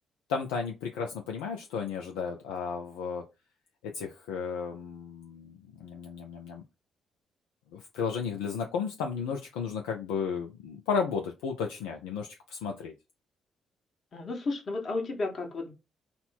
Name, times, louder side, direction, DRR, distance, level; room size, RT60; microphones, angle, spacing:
voice 1, 0.3-3.2 3.8-6.6 7.7-12.9, left 6 dB, 75° left, 3 dB, 0.4 m, -33 dB
voice 2, 14.1-15.7, left 3 dB, 50° left, 2 dB, 1.5 m, -33 dB
4.1 x 2.2 x 4.2 m, 0.26 s
figure-of-eight pair, 40°, 0 cm